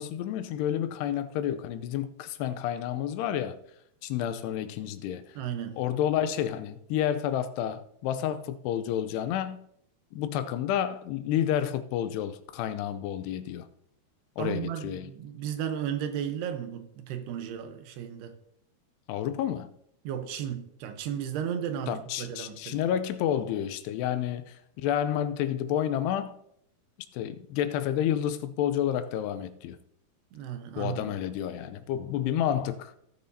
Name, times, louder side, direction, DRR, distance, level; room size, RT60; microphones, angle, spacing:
voice 1, 0.0-3.6 4.0-5.4 5.8-9.6 10.1-13.7 14.4-15.1 19.1-19.7 21.9-26.4 27.1-29.8 30.8-33.0, left 10 dB, 85° left, 2.7 m, -30 dB
voice 2, 5.4-5.8 14.4-18.3 20.0-22.8 30.3-31.1, right 9 dB, 80° right, 2.9 m, -34 dB
16.5 x 6.9 x 2.7 m
omnidirectional pair, 4.8 m